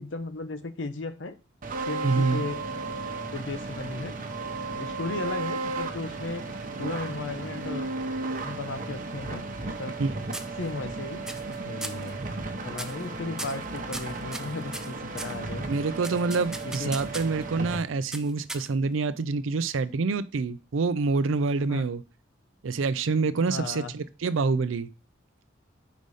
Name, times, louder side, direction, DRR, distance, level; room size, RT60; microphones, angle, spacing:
voice 1, 0.0-1.4 1.9-2.6 3.3-4.2 4.8-6.4 6.8-7.9 8.4-10.0 10.6-12.2 12.6-15.7 16.6-16.9 21.7-21.8 23.5-23.9, left 2 dB, 70° left, 0.8 m, -35 dB
sound 1, 1.6-17.8, right 3 dB, 45° right, 1.0 m, -34 dB
voice 2, 2.0-2.5 10.0-10.2 15.7-22.0 22.6-24.9, right 4 dB, 90° right, 0.5 m, -26 dB
sound 2, 9.1-10.0 10.3-10.9 11.3-11.6 11.8-12.1 12.7-13.1 13.4-15.4 16.0-17.4 18.1-19.0, right 1 dB, 5° right, 0.5 m, -38 dB
5.1 x 4.1 x 4.8 m
head